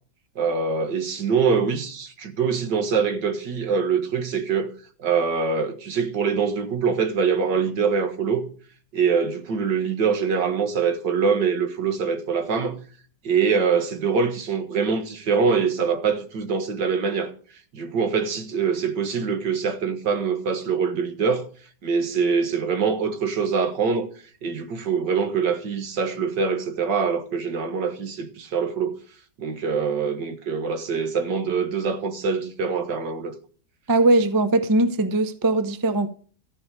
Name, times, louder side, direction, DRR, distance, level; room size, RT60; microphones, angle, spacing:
voice 1, 0.4-4.7 5.0-8.5 8.9-12.8 13.2-17.3 17.7-21.5 21.8-24.1 24.4-29.0 29.4-33.3, right 5 dB, 70° right, 2.1 m, -24 dB
voice 2, 33.9-36.1, right 2 dB, 20° right, 0.5 m, -20 dB
14.0 x 5.5 x 8.1 m
omnidirectional pair, 2.0 m